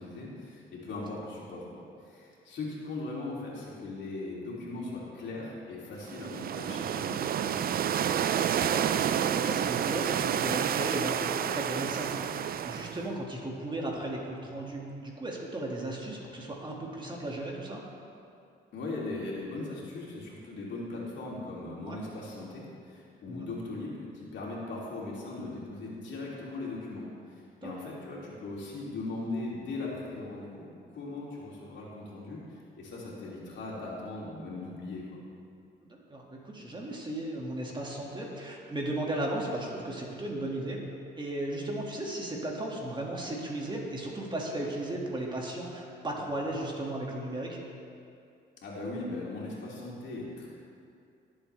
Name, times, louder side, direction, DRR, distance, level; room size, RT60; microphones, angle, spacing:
voice 1, 0.0-7.6 18.7-32.4 32.7-35.0 48.6-50.5, left 2 dB, 65° left, -5 dB, 3.0 m, -39 dB
sound 1, 6.0-13.1, right 9 dB, 50° right, 0.4 m, -29 dB
voice 2, 8.4-17.8 21.9-22.0 23.3-23.5 27.6-27.7 35.9-40.8 41.2-47.6, right 1 dB, 25° right, -2 dB, 2.1 m, -36 dB
18.5 x 7.9 x 3.4 m, 2.5 s
cardioid pair, 90°, 20 cm